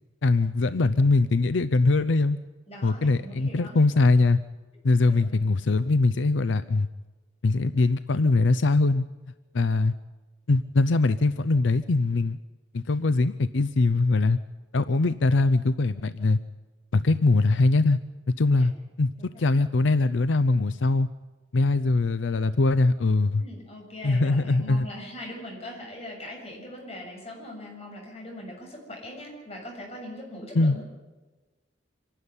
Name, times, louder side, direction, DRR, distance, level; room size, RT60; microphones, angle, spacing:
voice 1, 0.2-2.4 2.8-4.4 4.8-6.9 7.4-9.0 9.5-9.9 10.5-12.4 12.7-14.4 14.7-16.4 16.9-18.0 18.4-18.7 19.0-19.1 19.4-21.1 21.5-23.4 24.0-24.9 30.5-30.8, left 3 dB, 80° left, 13 dB, 0.6 m, -22 dB
voice 2, 2.7-3.8 5.1-5.4 19.2-19.5 23.4-31.0, left 1 dB, 35° left, 0 dB, 7.3 m, -41 dB
25.5 x 12.5 x 9.8 m, 1.2 s
head